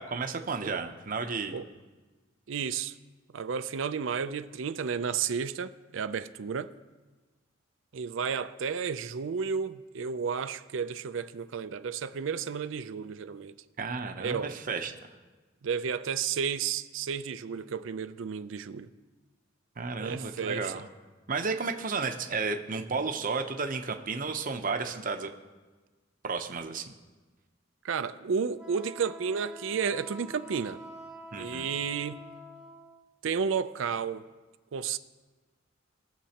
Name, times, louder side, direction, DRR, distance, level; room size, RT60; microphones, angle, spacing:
voice 1, 0.0-1.6 13.8-14.9 19.8-20.9 21.3-25.3 26.2-26.9 31.3-31.7, right 4 dB, 45° right, 0.7 m, -32 dB
voice 2, 2.5-3.0 3.3-6.7 7.9-13.6 14.2-14.6 15.6-18.9 20.0-20.9 27.8-30.8 31.4-32.3 33.2-34.3 34.7-35.0, right 6 dB, 75° right, 0.5 m, -32 dB
Wind instrument woodwind instrument, 28.6-33.0, equal, 5° right, 0.8 m, -47 dB
22.0 x 7.4 x 2.9 m
head